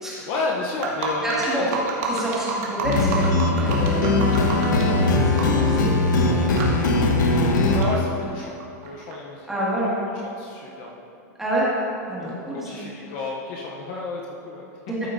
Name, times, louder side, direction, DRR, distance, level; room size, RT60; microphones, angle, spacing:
voice 1, 0.1-1.7 7.7-8.5 8.8-9.5 10.2-11.0 12.2-12.4 12.6-14.8, left 3 dB, 40° left, -1 dB, 0.8 m, -31 dB
sound 1, 0.8-4.8 5.4-5.6 5.9-6.2 6.6-6.7 7.4-7.5 7.8-9.1, right 6 dB, 50° right, 1.6 m, -29 dB
voice 2, 1.2-1.7 2.1-7.1 7.7-7.9 9.5-10.0 11.4-11.7 12.1-12.8 14.9-15.1, right 1 dB, 5° right, -8 dB, 1.9 m, -28 dB
sound 2, 2.8-7.8, left 2 dB, 90° left, 1.1 m, -20 dB
13.5 x 7.1 x 2.6 m, 2.8 s
supercardioid pair, 165°, 10 cm